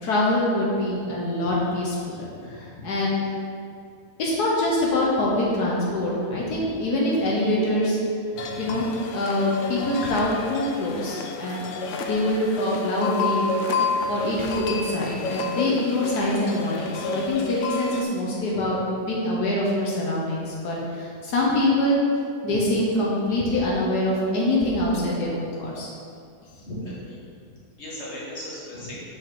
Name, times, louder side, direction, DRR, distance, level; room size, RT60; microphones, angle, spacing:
voice 1, 0.0-3.2 4.2-8.0 8.6-8.9 9.1-11.7 12.0-13.5 14.1-18.8 19.1-22.0 22.4-25.9, left 1 dB, 85° left, -4 dB, 1.5 m, -24 dB
voice 2, 2.0-2.8 6.3-6.7 8.4-8.8 14.0-14.1 18.5-18.7 22.4-22.6 23.4-23.5 26.6-27.2 27.5-29.0, left 1 dB, 45° left, -6 dB, 1.8 m, -39 dB
sound 1, 8.4-18.0, left 3 dB, 65° left, 0.8 m, -30 dB
5.9 x 4.8 x 4.8 m, 2.3 s
omnidirectional pair, 1.7 m